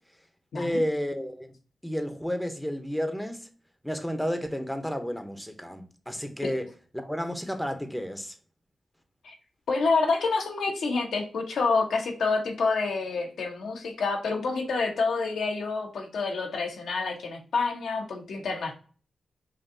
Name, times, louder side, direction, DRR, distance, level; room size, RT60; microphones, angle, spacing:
voice 1, 0.5-1.5 1.8-3.5 3.8-6.7 6.9-8.4, equal, 5° left, 0.7 m, -31 dB
voice 2, 9.7-18.7, left 4 dB, 85° left, 0.9 m, -28 dB
5.3 x 2.6 x 2.6 m
cardioid pair, 60°, 0 cm